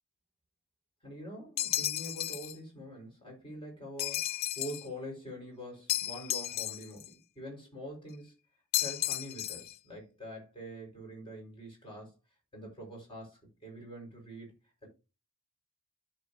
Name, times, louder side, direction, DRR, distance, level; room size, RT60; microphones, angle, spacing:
voice 1, 1.0-8.4 8.8-12.1 12.5-14.5 14.8-14.9, equal, 25° left, 4.4 m, -45 dB
sound 1, 1.6-2.6 4.0-4.9 5.9-7.1 8.7-9.7, left 13 dB, 45° left, 0.4 m, -33 dB
13.5 x 6.1 x 2.6 m
head